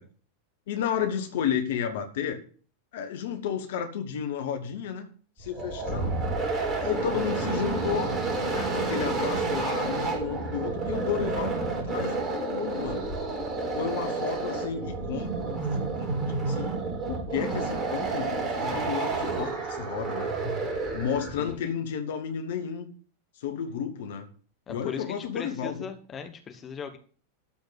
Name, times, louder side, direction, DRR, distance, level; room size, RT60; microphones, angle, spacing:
voice 1, 0.7-2.4 2.9-5.1 5.4-6.1 6.8-8.1 8.5-13.1 13.8-16.1 16.4-16.7 17.1-20.3 20.9-22.9 23.4-24.3 24.7-25.9, left 8 dB, 55° left, 6 dB, 1.4 m, -32 dB
sound 1, 5.4-21.5, right 3 dB, 25° right, 4.2 m, -30 dB
voice 2, 24.7-27.0, left 7 dB, 25° left, 6 dB, 1.4 m, -38 dB
13.0 x 4.3 x 8.2 m, 0.41 s
figure-of-eight pair, 90°, 0 cm